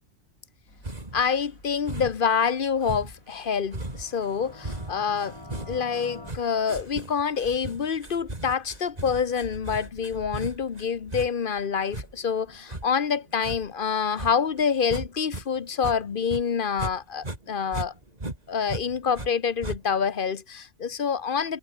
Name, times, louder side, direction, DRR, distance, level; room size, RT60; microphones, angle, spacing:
sound 1, 0.7-16.7, left 1 dB, 80° left, 8.6 m, -60 dB
sound 2, 0.8-1.3 1.9-2.3 2.8-15.4 15.7-17.0 17.2-19.3 19.6-20.1, right 2 dB, 30° right, 3.5 m, -37 dB
voice 1, 1.1-5.4 5.7-17.9 18.5-21.6, left 6 dB, 45° left, 1.1 m, -27 dB
sound 3, 3.8-6.3, left 2 dB, 20° left, 1.7 m, -45 dB
omnidirectional pair, 1.4 m